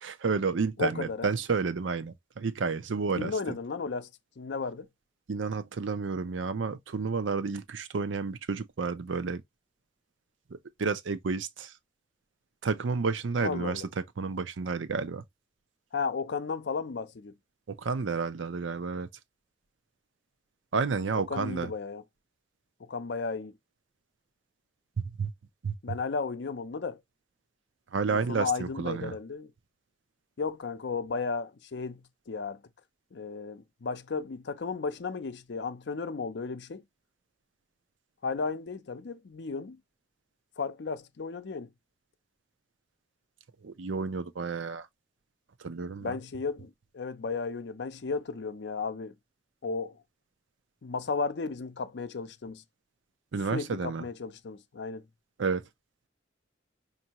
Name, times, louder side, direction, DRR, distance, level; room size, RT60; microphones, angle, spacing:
voice 1, 0.0-3.3 5.3-9.4 10.8-11.7 12.6-13.8 14.2-15.2 17.7-19.1 20.7-21.7 25.2-25.3 25.6-26.0 27.9-29.1 43.6-44.9 45.6-46.1 53.3-54.0 55.4-55.6, right 4 dB, 85° right, 0.6 m, -31 dB
voice 2, 0.8-1.3 3.1-4.1 4.4-4.9 13.4-13.9 15.9-17.3 21.3-22.0 22.8-23.5 25.8-27.0 28.1-29.5 30.4-32.0 32.3-32.6 33.1-36.8 38.2-39.8 40.6-41.7 46.0-49.1 49.6-50.0 50.8-52.6 53.5-55.0, left 4 dB, 65° left, 0.5 m, -34 dB
5.4 x 2.6 x 2.9 m
head